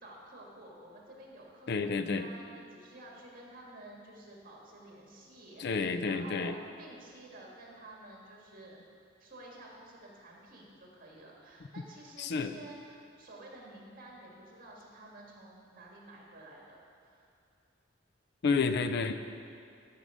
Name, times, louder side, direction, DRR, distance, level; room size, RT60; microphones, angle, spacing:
voice 1, 0.0-8.8 9.2-17.3, right 1 dB, 50° right, -2 dB, 1.9 m, -51 dB
voice 2, 1.7-2.3 5.6-6.5 12.2-12.5 18.4-19.2, left 4 dB, 60° left, 10 dB, 0.5 m, -30 dB
13.0 x 5.4 x 4.9 m, 2.4 s
head